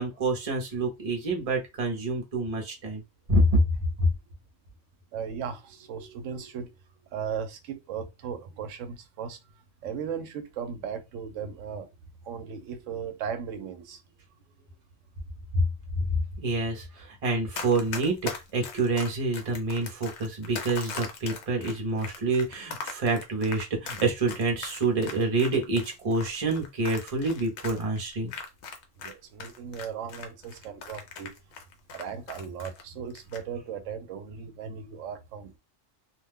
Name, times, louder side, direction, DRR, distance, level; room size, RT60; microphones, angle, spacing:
voice 1, 0.0-3.0 3.3-3.6 4.0-4.1 15.5-15.6 16.4-28.3, right 2 dB, 35° right, 0.7 m, -27 dB
voice 2, 5.1-6.7 7.1-9.4 9.8-11.9 12.2-14.0 29.0-31.3 31.9-35.6, right 7 dB, 75° right, 0.9 m, -37 dB
Run, 17.5-29.1 29.4-32.8 33.1-33.4, left 5 dB, 65° left, 0.9 m, -39 dB
2.5 x 2.2 x 3.4 m
omnidirectional pair, 1.3 m